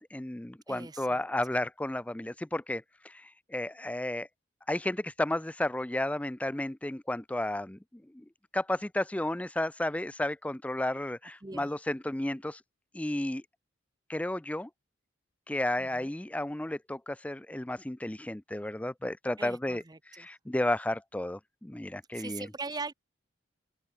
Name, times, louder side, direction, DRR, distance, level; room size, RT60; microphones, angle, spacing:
voice 1, 0.1-4.3 4.7-8.2 8.5-12.6 12.9-13.4 14.1-14.7 15.5-19.8 20.1-22.5, left 1 dB, 5° left, 0.4 m, -33 dB
voice 2, 0.7-1.2 11.4-11.7 15.8-16.1 19.4-20.3 22.1-22.9, right 4 dB, 20° right, 0.7 m, -41 dB
head